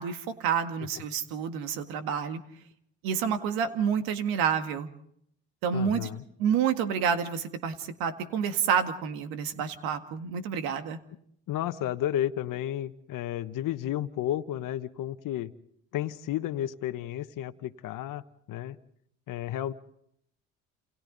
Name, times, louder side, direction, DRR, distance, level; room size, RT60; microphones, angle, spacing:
voice 1, 0.0-2.4 3.0-4.9 5.6-6.1 6.4-11.0, right 7 dB, 85° right, 8 dB, 1.9 m, -29 dB
voice 2, 5.7-6.2 11.5-15.5 15.9-18.2 18.5-18.8 19.3-19.7, left 12 dB, 65° left, 10 dB, 1.1 m, -32 dB
29.5 x 28.5 x 4.0 m, 0.70 s
supercardioid pair, 70°, 35 cm